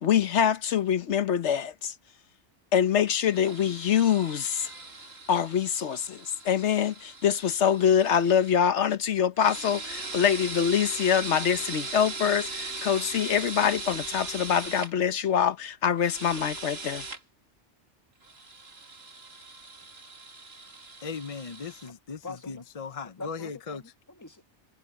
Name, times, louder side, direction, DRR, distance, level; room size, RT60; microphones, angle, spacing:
voice 1, 0.0-1.9 2.7-4.7 5.3-17.0, left 8 dB, 80° left, 1.2 m, -25 dB
sound 1, 3.3-8.6 9.4-14.9 16.0-17.2 18.2-21.9, right 3 dB, 65° right, 2.7 m, -39 dB
voice 2, 21.0-23.8, left 5 dB, 40° left, 0.6 m, -38 dB
voice 3, 22.2-22.6 23.2-24.4, left 3 dB, 15° left, 1.4 m, -43 dB
omnidirectional pair, 1.2 m